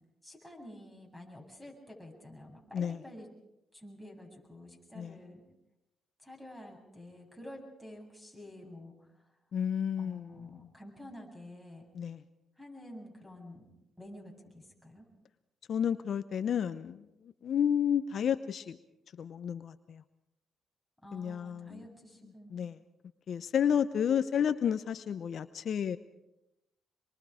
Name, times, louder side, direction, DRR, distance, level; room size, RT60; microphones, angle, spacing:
voice 1, 0.2-3.3 3.7-5.4 6.2-9.1 10.0-11.9 12.6-13.7 14.0-15.1 21.0-22.6, left 1 dB, ahead, 2 dB, 7.9 m, -49 dB
voice 2, 9.5-10.7 11.9-12.2 15.7-17.1 17.4-18.8 19.2-20.0 21.1-21.9 22.5-22.8 23.3-26.0, left 8 dB, 60° left, 11 dB, 0.8 m, -31 dB
26.5 x 23.0 x 5.0 m, 0.90 s
cardioid pair, 80°, 0 cm